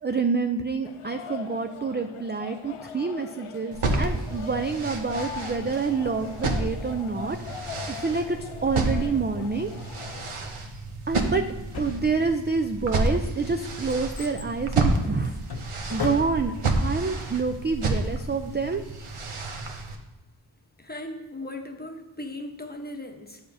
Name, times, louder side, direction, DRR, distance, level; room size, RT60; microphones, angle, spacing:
voice 1, 0.0-7.4 7.9-9.7 11.1-11.4 11.8-15.4 15.9-18.8, right 4 dB, 25° right, 6 dB, 0.3 m, -27 dB
sound 1, 0.8-10.3, left 8 dB, 85° left, 0.6 m, -41 dB
sound 2, 3.7-20.0, right 2 dB, 85° right, 0.9 m, -30 dB
Drawer open or close, 11.7-12.6 13.2-16.7 17.0-17.1, left 5 dB, 50° left, 0.7 m, -36 dB
voice 2, 20.8-23.4, left 1 dB, 20° left, 4 dB, 0.9 m, -37 dB
8.8 x 6.9 x 2.7 m, 1.1 s
wide cardioid pair, 50°, 49 cm